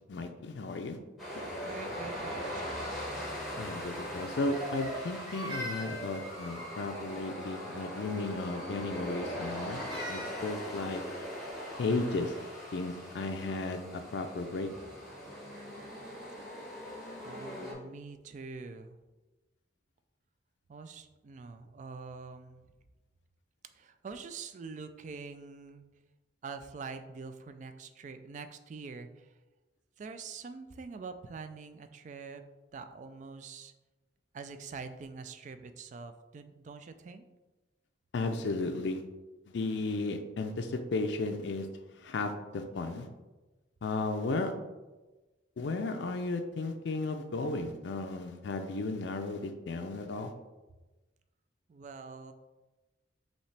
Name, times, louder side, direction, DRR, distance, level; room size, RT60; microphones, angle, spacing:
voice 1, 0.1-1.0 3.6-9.8 10.1-11.0 11.8-12.3 12.7-14.7 38.1-39.0 39.5-41.7 42.0-43.1 43.8-44.5 45.6-50.3, left 3 dB, 70° left, 6 dB, 0.4 m, -34 dB
sound 1, 1.2-17.7, equal, ahead, 1.3 m, -40 dB
voice 2, 1.6-3.0 17.2-19.0 20.7-22.6 23.7-25.8 26.4-29.3 30.0-32.4 32.7-33.7 34.3-37.2 51.7-52.3, right 4 dB, 40° right, 9 dB, 0.3 m, -45 dB
Crying sobbing, 4.5-7.0 9.2-10.7, equal, 25° right, 0.8 m, -42 dB
5.4 x 2.9 x 3.3 m, 1.1 s
head